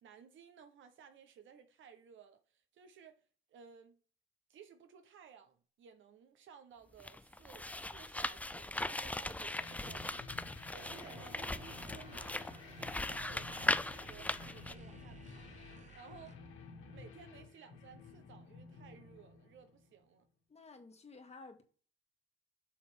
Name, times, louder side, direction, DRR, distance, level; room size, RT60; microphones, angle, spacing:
voice 1, 0.0-3.2 3.5-4.0 4.5-12.5 12.8-16.4 16.8-20.3, right 7 dB, 75° right, 1.2 m, -57 dB
sound 1, 7.0-14.7, left 2 dB, 5° left, 0.4 m, -39 dB
sound 2, 9.5-20.0, left 4 dB, 85° left, 2.0 m, -53 dB
sound 3, 10.7-16.4, right 4 dB, 35° right, 1.0 m, -56 dB
voice 2, 20.5-21.6, left 3 dB, 30° left, 1.6 m, -53 dB
7.2 x 3.3 x 6.3 m
cardioid pair, 90°, 20 cm